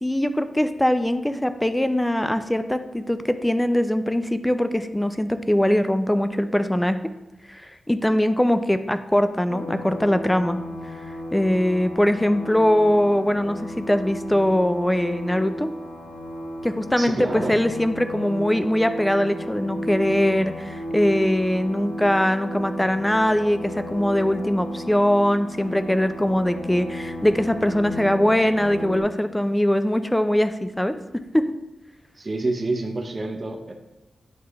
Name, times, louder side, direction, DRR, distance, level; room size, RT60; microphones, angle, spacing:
voice 1, 0.0-7.0 7.5-10.6 11.3-15.7 16.6-30.9, left 1 dB, 5° left, 10 dB, 0.4 m, -22 dB
sound 1, 9.5-29.0, left 1 dB, 75° left, 1.0 m, -34 dB
voice 2, 17.0-17.6 32.2-33.7, right 2 dB, 35° right, 2 dB, 0.7 m, -28 dB
9.4 x 3.2 x 3.4 m, 1.0 s
wide cardioid pair, 130°, 0 cm